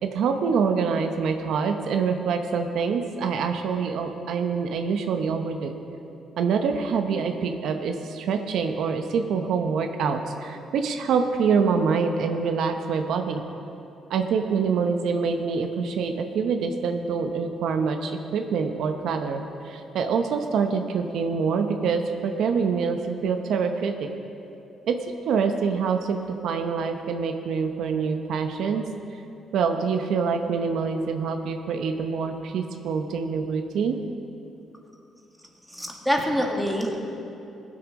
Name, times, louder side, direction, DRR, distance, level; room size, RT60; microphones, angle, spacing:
voice 1, 0.0-5.7 6.4-13.4 14.1-24.1 24.9-25.0 25.3-28.9 29.5-34.0, right 5 dB, 75° right, 6 dB, 0.7 m, -25 dB
voice 2, 35.7-37.0, equal, ahead, 0 dB, 1.8 m, -25 dB
17.0 x 7.7 x 5.2 m, 2.9 s
cardioid pair, 90°, 0 cm